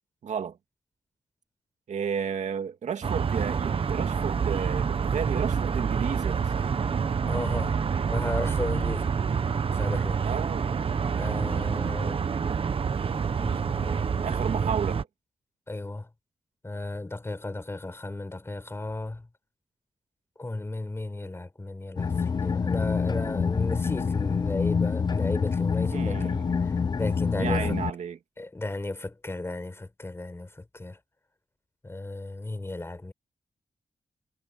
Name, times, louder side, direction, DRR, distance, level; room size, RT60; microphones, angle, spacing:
voice 1, 0.2-0.6 1.9-6.8 10.2-10.7 14.2-15.0 25.9-26.6 27.4-28.2, right 7 dB, 85° right, 2.4 m, -32 dB
sound 1, 3.0-15.0, right 6 dB, 50° right, 1.0 m, -27 dB
voice 2, 7.3-7.8 8.1-9.1 9.7-10.2 11.2-12.2 13.4-14.3 15.7-16.1 16.6-19.3 20.4-27.8 28.4-31.0 31.8-33.1, left 2 dB, 20° left, 5.0 m, -35 dB
sound 2, 22.0-27.9, left 5 dB, 35° left, 0.5 m, -26 dB
wide cardioid pair, 100°, 12 cm